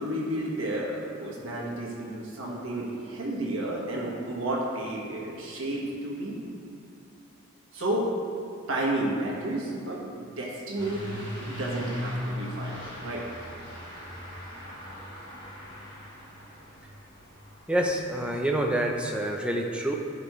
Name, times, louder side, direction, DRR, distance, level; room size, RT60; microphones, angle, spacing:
voice 1, 0.0-6.4 7.7-8.1 8.7-11.0 11.4-13.2, right 1 dB, 75° right, -3 dB, 1.5 m, -31 dB
Truck / Accelerating revving vroom, 10.8-18.7, equal, 20° left, 1.6 m, -39 dB
voice 2, 17.7-19.9, right 1 dB, 5° right, 1 dB, 0.6 m, -27 dB
11.5 x 5.2 x 3.2 m, 2.5 s
head